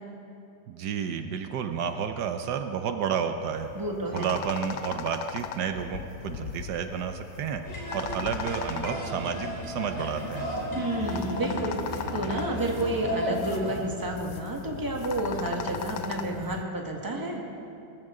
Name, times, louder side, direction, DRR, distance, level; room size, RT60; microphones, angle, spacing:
voice 1, 0.7-3.7 4.1-7.6 7.9-10.5, right 7 dB, 75° right, 7 dB, 1.3 m, -31 dB
sound 1, 3.4-16.6, left 8 dB, 80° left, 1.3 m, -39 dB
voice 2, 3.7-4.3 10.7-11.8 12.1-17.4, right 1 dB, 15° right, 0 dB, 1.5 m, -30 dB
sound 2, 7.6-13.7, equal, 50° left, 3.1 m, -34 dB
22.0 x 14.0 x 3.7 m, 2.7 s
omnidirectional pair, 1.8 m